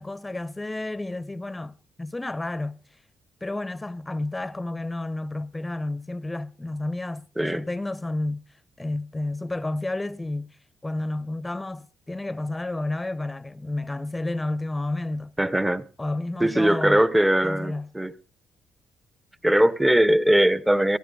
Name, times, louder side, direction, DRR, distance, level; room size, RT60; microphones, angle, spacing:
voice 1, 0.0-2.8 3.4-8.4 8.8-10.6 10.8-15.3 16.0-17.0 17.4-17.9, left 2 dB, 15° left, 0.9 m, -31 dB
voice 2, 15.4-15.8 16.4-18.1 19.4-21.0, right 1 dB, 10° right, 1.0 m, -20 dB
23.5 x 14.5 x 2.5 m
cardioid pair, 90°, 0 cm